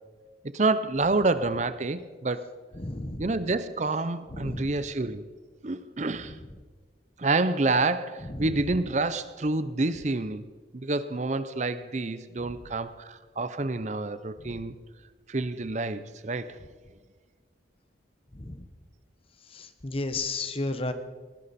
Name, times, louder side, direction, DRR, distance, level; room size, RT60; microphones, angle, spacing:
voice 1, 0.5-2.5 3.2-5.3 5.6-6.4 7.2-10.5 10.7-14.7 15.3-16.6, right 3 dB, 40° right, 13 dB, 0.6 m, -28 dB
voice 2, 2.7-3.2 4.3-4.7 8.3-8.7 14.4-14.6 18.3-18.7 19.5-20.9, left 2 dB, 30° left, 9 dB, 1.0 m, -33 dB
19.5 x 16.0 x 4.2 m, 1.4 s
head